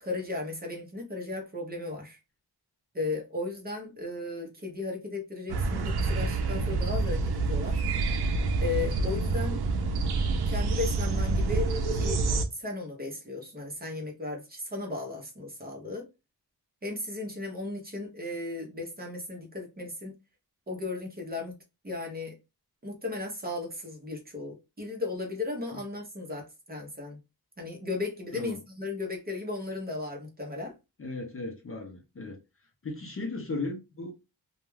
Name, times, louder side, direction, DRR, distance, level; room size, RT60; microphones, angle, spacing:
voice 1, 0.0-2.2 2.9-7.8 8.6-9.6 10.5-12.2 12.5-16.1 16.8-20.1 20.7-21.5 21.8-22.4 22.8-27.2 27.6-30.7, left 3 dB, 25° right, 0.7 m, -35 dB
sound 1, 5.5-12.4, right 3 dB, 80° right, 0.5 m, -27 dB
voice 2, 31.0-32.4 32.8-34.1, left 3 dB, 35° left, 0.5 m, -36 dB
2.3 x 2.2 x 3.0 m
wide cardioid pair, 175°, 39 cm